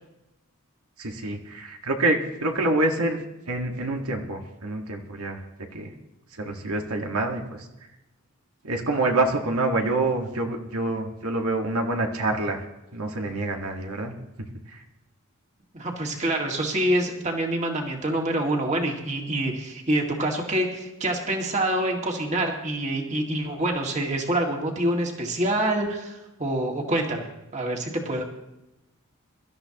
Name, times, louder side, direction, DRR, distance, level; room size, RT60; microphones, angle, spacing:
voice 1, 1.0-3.2 3.5-5.4 5.7-5.9 6.3-7.7 8.6-12.6 12.9-14.1 14.7-14.8, right 2 dB, 80° right, 2 dB, 1.6 m, -26 dB
voice 2, 15.7-27.3 27.5-28.2, right 1 dB, 30° right, 1 dB, 2.0 m, -26 dB
24.0 x 12.5 x 2.9 m, 0.98 s
head